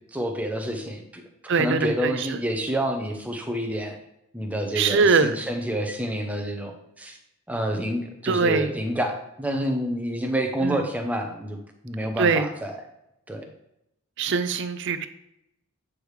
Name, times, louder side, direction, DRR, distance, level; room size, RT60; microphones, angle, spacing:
voice 1, 0.1-1.2 1.5-4.0 4.3-7.2 7.5-12.8 13.3-13.4, equal, 5° right, 3 dB, 0.7 m, -28 dB
voice 2, 1.5-2.3 4.8-5.3 8.3-8.7 10.6-10.8 12.2-12.5 14.2-15.1, right 4 dB, 55° right, 11 dB, 0.5 m, -22 dB
8.3 x 4.8 x 3.2 m, 0.83 s
head